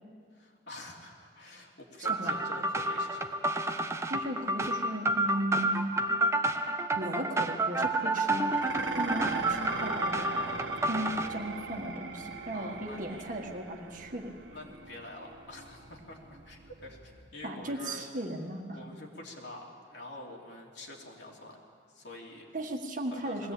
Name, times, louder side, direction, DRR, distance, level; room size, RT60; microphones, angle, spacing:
voice 1, 0.3-3.4 12.5-13.3 14.5-18.0 18.7-21.6 21.9-22.4 23.1-23.5, left 1 dB, 60° left, -1 dB, 3.1 m, -47 dB
sound 1, 2.1-11.3, right 2 dB, 15° right, 0.8 m, -30 dB
voice 2, 4.1-5.9 6.9-8.6 9.0-10.5 10.9-14.3 17.4-18.8 22.5-23.5, right 1 dB, 40° right, 2 dB, 1.7 m, -36 dB
Dishes pots and pans, 8.5-17.3, right 4 dB, 70° right, 1.5 m, -40 dB
21.0 x 16.5 x 8.7 m, 2.1 s
head